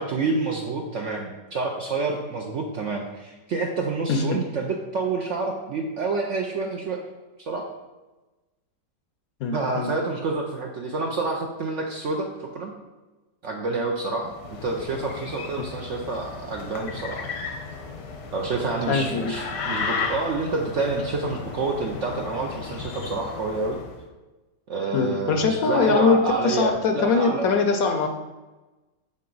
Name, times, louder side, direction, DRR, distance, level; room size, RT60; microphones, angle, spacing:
voice 1, 0.0-7.0 7.4-7.6 9.5-12.7 13.4-17.3 18.3-23.8 24.7-27.5, right 3 dB, 65° right, 1 dB, 0.7 m, -28 dB
voice 2, 9.4-9.9 18.9-19.3 24.9-28.1, left 4 dB, 65° left, 5 dB, 0.9 m, -22 dB
sound 1, 14.2-24.0, left 5 dB, 85° left, 1.5 m, -34 dB
7.4 x 4.2 x 4.0 m, 1.1 s
omnidirectional pair, 1.8 m